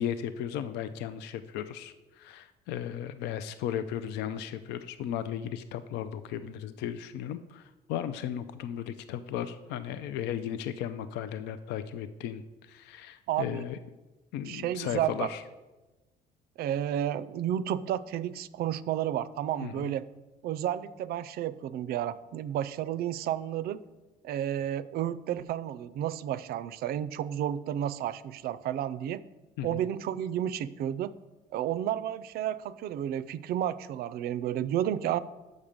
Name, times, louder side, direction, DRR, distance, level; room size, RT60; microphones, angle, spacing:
voice 1, 0.0-13.8 14.3-15.4 19.6-19.9 29.6-29.8, left 9 dB, 85° left, 12 dB, 0.4 m, -36 dB
voice 2, 13.3-13.6 14.5-15.3 16.6-20.1 20.4-23.8 24.2-29.2 29.6-31.1 31.5-35.2, right 11 dB, 65° right, 17 dB, 0.4 m, -31 dB
7.2 x 6.5 x 5.1 m, 1.1 s
cardioid pair, 110°, 17 cm